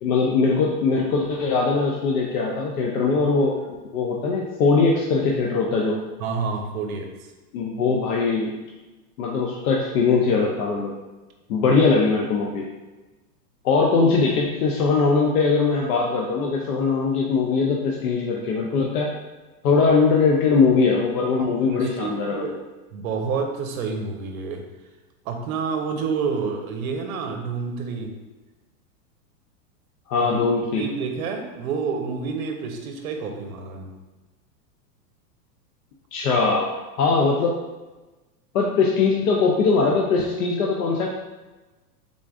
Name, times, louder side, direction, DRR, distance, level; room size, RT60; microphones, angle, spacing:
voice 1, 0.0-3.6 3.9-6.0 7.5-8.6 9.2-10.9 11.5-12.6 13.6-19.2 19.6-22.5 30.1-30.8 36.1-36.7 37.0-37.5 38.5-41.1, left 4 dB, 60° left, -1 dB, 0.6 m, -21 dB
voice 2, 6.2-7.1 21.7-22.5 22.9-24.6 25.2-28.2 30.2-30.4 30.8-33.9, right 5 dB, 60° right, 4 dB, 0.7 m, -28 dB
3.8 x 2.4 x 3.5 m, 1.1 s
supercardioid pair, 155°, 49 cm